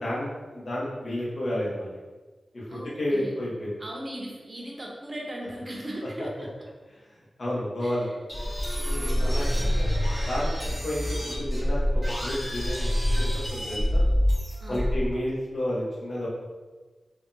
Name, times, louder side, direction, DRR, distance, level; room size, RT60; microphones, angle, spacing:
voice 1, 0.0-2.0 2.5-2.6 3.0-3.8 7.4-8.1 8.8-10.5 10.8-11.9 12.2-14.0 14.7-16.3, left 1 dB, 65° left, -6 dB, 0.9 m, -31 dB
voice 2, 2.7-3.4 3.8-6.5 7.8-8.1 8.9-9.5 14.6-15.0, right 1 dB, 35° right, -2 dB, 0.6 m, -38 dB
sound 1, 8.3-15.1, equal, 25° left, 1.2 m, -26 dB
3.4 x 2.2 x 2.6 m, 1.3 s
wide cardioid pair, 105°, 0 cm